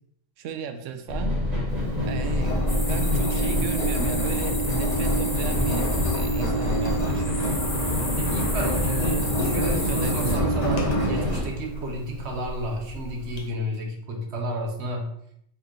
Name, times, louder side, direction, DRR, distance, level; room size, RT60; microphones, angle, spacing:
voice 1, 0.4-1.3 2.0-2.5 2.9-7.5 8.5-9.3 9.6-10.5, right 6 dB, 85° right, 7 dB, 0.9 m, -35 dB
sound 1, 1.1-11.4, left 1 dB, 35° right, 1.5 m, -27 dB
Engine, 1.7-13.4, right 1 dB, 35° left, 0.9 m, -29 dB
sound 2, 2.7-10.3, left 2 dB, 70° left, 1.7 m, -34 dB
voice 2, 8.2-15.1, right 1 dB, 65° right, 2 dB, 1.1 m, -31 dB
4.3 x 3.9 x 3.0 m, 0.71 s
omnidirectional pair, 1.3 m